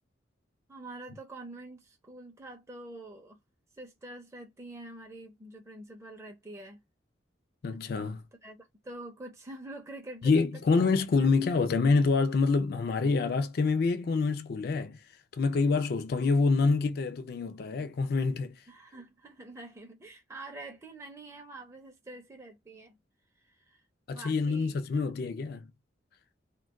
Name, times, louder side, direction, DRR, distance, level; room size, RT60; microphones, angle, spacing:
voice 1, 0.7-3.4 3.7-6.8 8.4-11.3 18.7-23.0 23.4-23.8 24.1-25.0, right 2 dB, 15° right, 0.5 m, -46 dB
voice 2, 7.6-8.2 10.2-15.0 15.3-18.6 24.1-25.7, left 4 dB, 55° left, 0.4 m, -26 dB
2.2 x 2.2 x 3.5 m
head